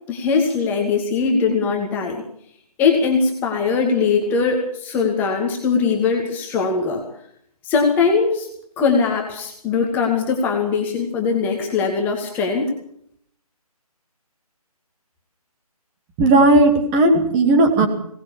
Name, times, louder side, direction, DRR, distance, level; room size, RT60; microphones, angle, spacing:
voice 1, 0.1-2.2 2.8-7.0 7.6-8.5 8.8-12.7, left 5 dB, 10° left, 2 dB, 2.2 m, -20 dB
voice 2, 16.2-17.9, right 2 dB, 15° right, 5 dB, 2.5 m, -15 dB
20.0 x 19.0 x 7.2 m, 0.67 s
figure-of-eight pair, 150°, 20 cm